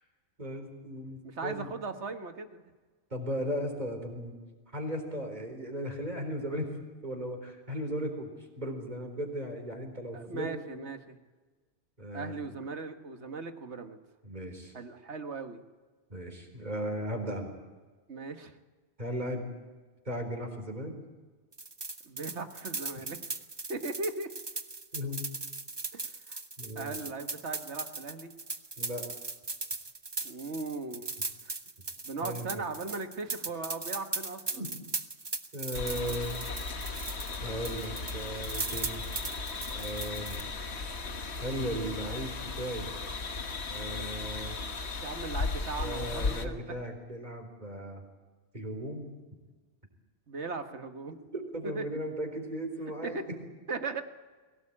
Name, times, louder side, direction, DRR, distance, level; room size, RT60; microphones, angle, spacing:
voice 1, 0.4-1.7 3.1-4.4 4.7-6.7 7.0-8.3 8.6-10.5 10.7-10.8 12.0-12.4 14.2-14.7 16.1-17.5 19.0-19.5 20.1-20.9 24.9-25.2 26.6-26.9 28.8-29.1 32.2-32.6 34.5-34.7 35.5-36.4 37.4-39.0 39.7-40.4 41.4-42.9 43.7-44.6 45.8-48.0 48.5-49.2 51.3-53.4, equal, 40° right, 4 dB, 4.2 m, -36 dB
voice 2, 1.2-2.6 10.1-11.2 12.1-14.0 14.7-15.6 18.1-18.6 22.0-23.2 23.7-24.3 25.9-26.4 26.7-28.3 30.2-31.1 31.4-31.5 32.0-34.7 45.0-46.6 50.3-51.1 51.6-52.0 53.0-53.3 53.7-54.0, right 3 dB, 80° right, 7 dB, 1.8 m, -38 dB
sound 1, 21.5-37.4 37.6-40.4, right 3 dB, 25° right, 0.9 m, -38 dB
sound 2, 35.7-46.5, left 4 dB, 70° left, 1.8 m, -36 dB
23.0 x 17.5 x 8.7 m, 1.3 s
omnidirectional pair, 1.1 m